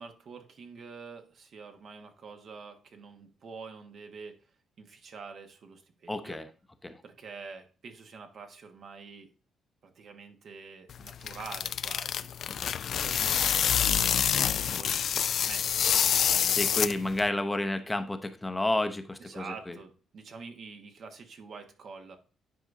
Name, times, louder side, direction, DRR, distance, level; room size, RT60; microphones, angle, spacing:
voice 1, 0.0-4.5 4.8-6.4 7.0-9.3 9.8-16.6 19.2-22.2, right 5 dB, 60° right, 5 dB, 1.4 m, -47 dB
voice 2, 6.1-6.5 6.8-7.0 16.5-19.4, left 1 dB, 15° left, 9 dB, 0.7 m, -30 dB
sound 1, 10.9-17.3, left 8 dB, 60° left, 0.3 m, -27 dB
10.0 x 4.8 x 2.6 m, 0.37 s
cardioid pair, 90°, 0 cm